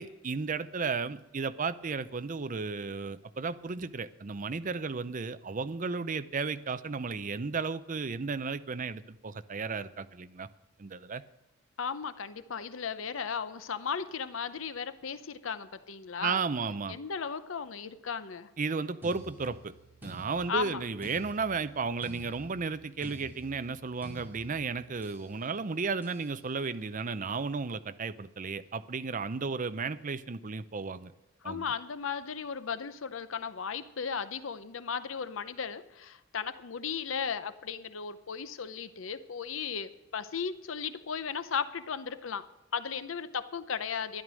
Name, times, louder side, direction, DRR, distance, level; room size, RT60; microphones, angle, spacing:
voice 1, 0.0-10.5 10.8-11.2 16.2-17.0 18.6-19.7 20.0-31.1 31.4-31.7, right 4 dB, 40° right, 12 dB, 0.6 m, -34 dB
voice 2, 11.8-16.4 16.9-18.5 20.5-20.8 31.4-42.5 42.7-44.2, left 6 dB, 75° left, 13 dB, 0.7 m, -36 dB
sound 1, 19.0-25.3 26.0-26.3, equal, 10° right, 4.9 m, -50 dB
13.0 x 10.5 x 6.3 m, 1.0 s
head